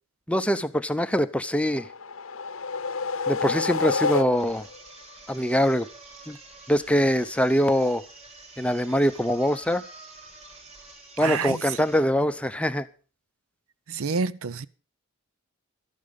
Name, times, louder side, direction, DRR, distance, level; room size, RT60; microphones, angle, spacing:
voice 1, 0.3-1.8 3.3-4.6 5.3-5.9 6.3-6.4 6.7-8.0 8.6-9.8 11.2-12.8, equal, 5° left, 0.6 m, -23 dB
sound 1, 1.7-4.8, left 4 dB, 70° left, 0.8 m, -29 dB
sound 2, 4.3-12.1, right 2 dB, 30° right, 5.9 m, -48 dB
voice 2, 11.2-11.8 13.9-14.7, right 5 dB, 75° right, 0.6 m, -28 dB
13.0 x 11.5 x 5.3 m
head